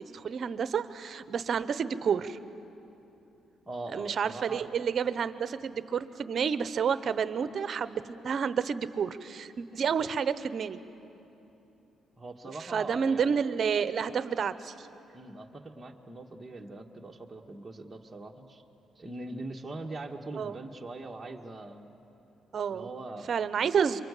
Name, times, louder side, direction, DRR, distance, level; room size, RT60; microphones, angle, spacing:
voice 1, 0.0-2.4 3.9-10.8 12.7-14.9 20.3-20.6 22.5-22.9 23.3-24.0, right 7 dB, 55° right, 13 dB, 0.9 m, -30 dB
voice 2, 3.6-4.7 12.2-13.4 15.1-18.6 18.9-21.9 22.7-23.3, right 2 dB, 20° right, 0 dB, 1.6 m, -41 dB
27.0 x 24.0 x 8.4 m, 3.0 s
cardioid pair, 90°, 0 cm